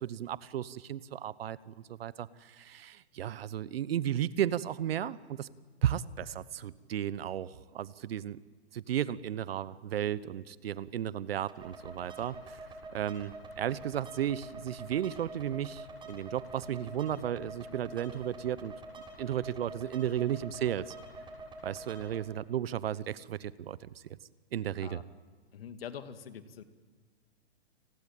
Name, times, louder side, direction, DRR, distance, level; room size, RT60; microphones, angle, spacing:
voice 1, 0.0-5.5 5.8-8.4 8.7-12.6 12.9-18.7 19.2-20.9 21.6-23.9 24.5-25.0, right 10 dB, 60° right, 18 dB, 1.1 m, -34 dB
sound 1, 11.5-22.2, right 2 dB, 15° right, 7.1 m, -47 dB
voice 2, 25.5-26.6, left 8 dB, 60° left, 10 dB, 2.3 m, -44 dB
29.5 x 20.0 x 9.2 m, 1.4 s
hypercardioid pair, 125°, 33 cm